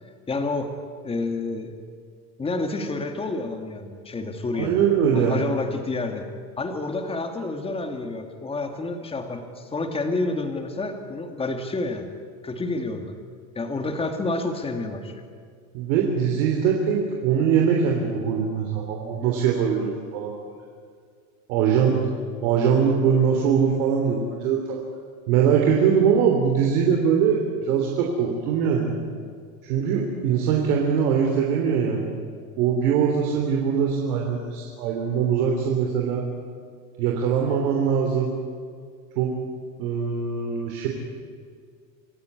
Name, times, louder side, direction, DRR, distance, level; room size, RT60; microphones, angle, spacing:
voice 1, 0.3-0.8 1.0-1.7 2.4-4.8 5.1-6.3 6.6-12.1 12.4-13.1 13.6-15.2, left 3 dB, 10° left, 5 dB, 2.2 m, -29 dB
voice 2, 4.5-5.4 15.7-20.4 21.5-22.0 22.4-24.8 25.3-28.9 29.6-32.1 32.6-36.3 37.0-38.4 39.2-39.3 39.8-40.9, right 7 dB, 70° right, 0 dB, 3.7 m, -22 dB
27.5 x 16.0 x 9.7 m, 2.1 s
cardioid pair, 165°, 45 cm